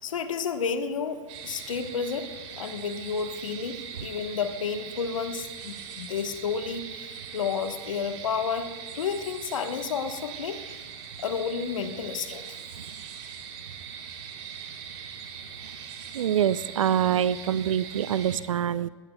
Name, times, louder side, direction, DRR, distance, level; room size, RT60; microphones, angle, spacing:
voice 1, 0.0-10.6 11.2-12.6, left 6 dB, 85° left, 8 dB, 1.3 m, -31 dB
sound 1, 1.3-18.4, right 7 dB, 55° right, 3.2 m, -41 dB
voice 2, 16.1-18.9, right 9 dB, 85° right, 17 dB, 0.6 m, -25 dB
21.0 x 16.5 x 2.3 m, 1.5 s
hypercardioid pair, 115°, 16 cm